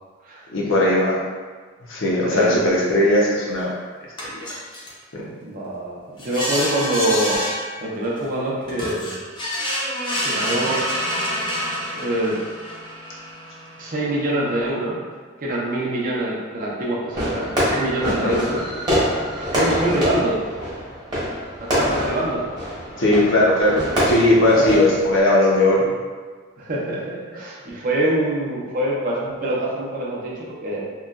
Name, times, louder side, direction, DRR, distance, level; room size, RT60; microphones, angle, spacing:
voice 1, 0.5-1.2 1.9-3.7 5.1-5.2 18.0-18.3 23.0-25.9, left 1 dB, 70° left, -4 dB, 0.6 m, -18 dB
voice 2, 2.2-2.6 5.4-7.4 7.8-9.1 10.2-10.8 11.9-12.4 13.8-15.0 15.4-18.6 19.4-20.4 21.6-22.4 24.5-24.8 26.6-30.8, right 1 dB, 45° right, -5 dB, 0.5 m, -25 dB
sound 1, 3.6-3.7 4.2-4.9 6.2-7.6 8.2-8.3 8.7-14.9, equal, 25° left, 0.5 m, -28 dB
Fireworks, 17.1-25.2, equal, 20° right, 0.8 m, -25 dB
2.9 x 2.2 x 2.3 m, 1.5 s
head